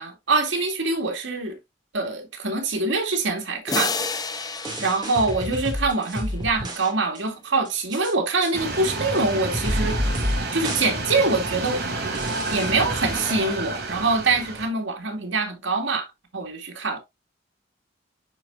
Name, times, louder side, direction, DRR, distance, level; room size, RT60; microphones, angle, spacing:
voice 1, 0.0-1.6 1.9-10.0 10.5-11.8 12.1-12.2 12.5-16.1 16.3-17.0, right 3 dB, 85° right, 2.1 m, -24 dB
sound 1, 3.7-6.4, left 4 dB, 20° left, 0.6 m, -31 dB
sound 2, 4.6-6.9 7.2-7.3 7.7-8.1 8.4-8.5 9.2-9.3 9.5-10.4 10.6-10.9 11.2-11.3 11.7-11.8 12.2-13.6, equal, 20° right, 2.3 m, -29 dB
sound 3, 8.5-14.7, right 2 dB, 55° right, 3.0 m, -30 dB
10.5 x 4.4 x 2.5 m
head